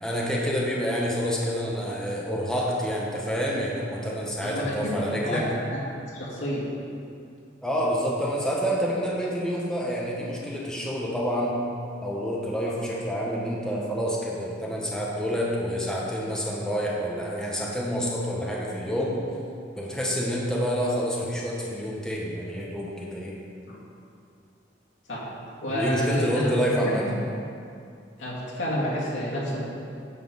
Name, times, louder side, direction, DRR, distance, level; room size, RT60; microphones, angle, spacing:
voice 1, 0.0-5.4 7.6-11.6 12.0-19.2 19.8-23.3 25.7-27.1, equal, 5° left, -4 dB, 1.0 m, -28 dB
voice 2, 4.4-5.4 5.7-5.8 6.1-6.7 12.6-12.8 23.7-23.8 25.1-25.2 25.6-26.8 27.0-27.1 28.2-29.6, equal, 90° left, -6 dB, 2.1 m, -29 dB
9.4 x 4.7 x 5.3 m, 2.5 s
head